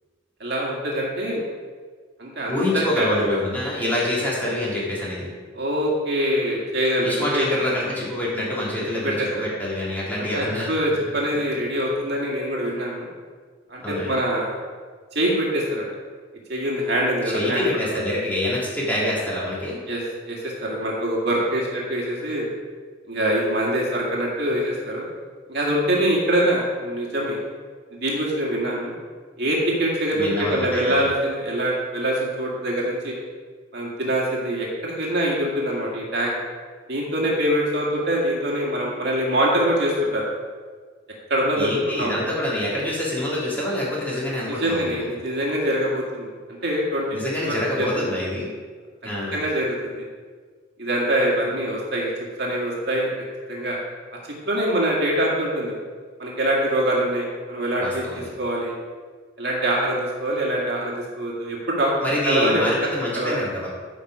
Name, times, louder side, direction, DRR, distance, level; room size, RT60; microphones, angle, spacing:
voice 1, 0.4-1.4 2.2-3.4 5.5-7.5 9.0-9.3 10.2-13.1 13.7-14.6 15.1-15.8 16.5-17.6 17.9-18.0 19.9-22.5 23.1-25.1 25.5-27.4 28.0-28.9 29.4-33.1 33.7-36.4 36.9-40.2 41.3-41.7 42.0-42.1 44.4-46.3 46.6-47.1 47.4-48.0 49.3-50.0 50.8-52.1 52.4-53.1 53.5-53.8 54.4-55.7 56.2-58.7 59.4-61.9 62.3-62.6 63.1-63.4, right 1 dB, 60° right, -3 dB, 2.0 m, -24 dB
voice 2, 2.5-5.3 7.0-10.7 13.8-14.2 17.2-19.8 30.1-31.0 41.6-44.9 47.1-48.5 49.0-49.4 57.8-58.3 62.0-63.7, left 1 dB, 10° left, -7 dB, 3.0 m, -26 dB
12.5 x 5.4 x 5.0 m, 1.6 s
head